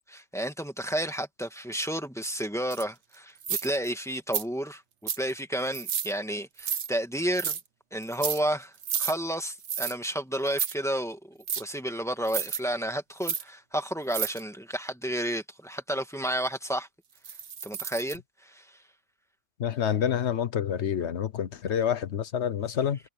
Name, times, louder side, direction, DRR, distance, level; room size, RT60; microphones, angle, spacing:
voice 1, 0.1-7.6 7.9-8.7 9.0-16.9 17.6-18.8, right 1 dB, ahead, 1.8 m, -31 dB
sound 1, 2.7-2.8 3.4-3.9 4.3-4.4 5.1-5.3 5.7-6.1 6.6-6.9 7.4-7.6 8.0-8.4 8.8-9.1 9.6-9.9 10.5-10.7 11.5-11.6 12.3-12.6 13.2-13.4 14.1-14.4 17.2-18.2, right 8 dB, 60° right, 1.3 m, -31 dB
voice 2, 19.6-23.0, left 8 dB, 60° left, 1.1 m, -28 dB
omnidirectional pair, 1.4 m